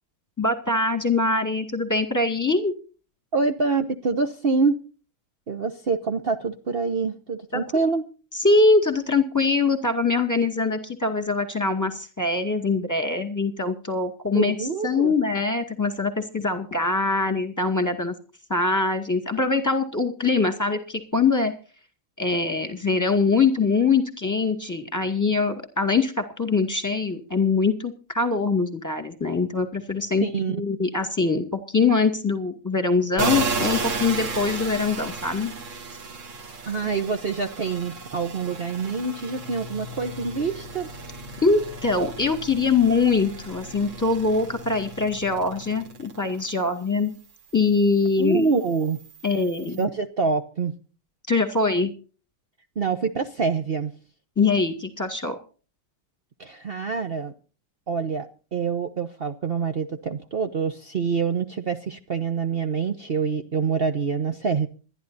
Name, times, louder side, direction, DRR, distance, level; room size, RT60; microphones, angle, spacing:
voice 1, 0.4-2.7 7.5-7.6 8.4-18.1 18.5-21.5 22.2-35.5 41.4-47.1 47.5-48.5 49.2-49.9 51.3-51.9 54.4-55.4, left 3 dB, 10° left, 6 dB, 1.9 m, -23 dB
voice 2, 3.3-4.8 5.5-8.0 14.3-15.1 30.2-30.6 36.7-40.9 48.2-49.0 49.8-50.7 52.8-53.9 56.4-57.3 57.9-64.7, right 5 dB, 60° right, 7 dB, 0.6 m, -26 dB
sound 1, 33.2-46.5 47.0-49.8, right 3 dB, 40° right, 1.7 m, -34 dB
26.5 x 11.0 x 2.7 m, 0.37 s
omnidirectional pair, 2.4 m